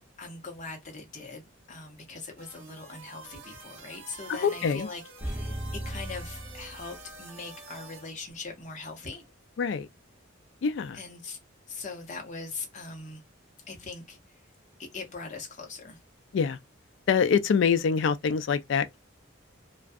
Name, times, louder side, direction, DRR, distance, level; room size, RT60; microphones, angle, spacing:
voice 1, 0.2-9.2 10.9-11.4 11.7-13.2 13.7-14.4 14.8-16.0, left 4 dB, 35° left, 0.7 m, -41 dB
sound 1, 2.4-8.1, right 4 dB, 65° right, 0.7 m, -48 dB
voice 2, 4.3-4.9 9.6-9.9 10.6-11.0 16.3-16.6 17.1-19.0, left 6 dB, 60° left, 0.3 m, -25 dB
sound 2, 5.2-7.4 7.7-7.8, right 1 dB, 15° right, 0.6 m, -37 dB
2.3 x 2.2 x 2.5 m
head